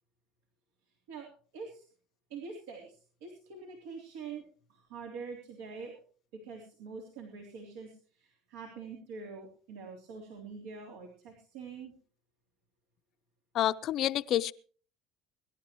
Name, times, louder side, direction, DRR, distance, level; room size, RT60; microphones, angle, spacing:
voice 1, 1.5-1.8 2.3-4.4 4.7-6.0 6.3-11.9, right 5 dB, 90° right, 3.4 m, -45 dB
voice 2, 13.5-14.5, left 12 dB, 50° left, 0.6 m, -28 dB
23.5 x 12.0 x 3.1 m
cardioid pair, 125°, 0 cm